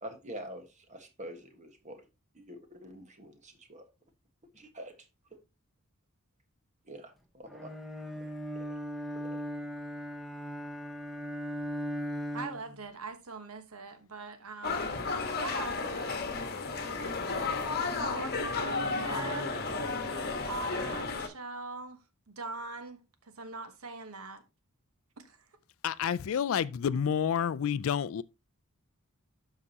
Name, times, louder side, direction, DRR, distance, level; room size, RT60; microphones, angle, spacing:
voice 1, 0.0-2.0 2.3-3.8 4.5-4.9 6.9-7.7 8.5-8.6 9.1-9.4, right 1 dB, 35° right, 1.4 m, -46 dB
Bowed string instrument, 7.5-12.8, equal, ahead, 1.0 m, -38 dB
voice 2, 12.3-15.0 15.2-16.3 16.8-16.9 17.8-22.0 22.3-24.4 25.2-25.4, right 3 dB, 80° right, 1.2 m, -42 dB
sound 1, 14.6-21.3, left 4 dB, 45° left, 1.2 m, -33 dB
voice 3, 25.8-28.2, left 8 dB, 65° left, 0.3 m, -29 dB
12.0 x 4.8 x 2.8 m
head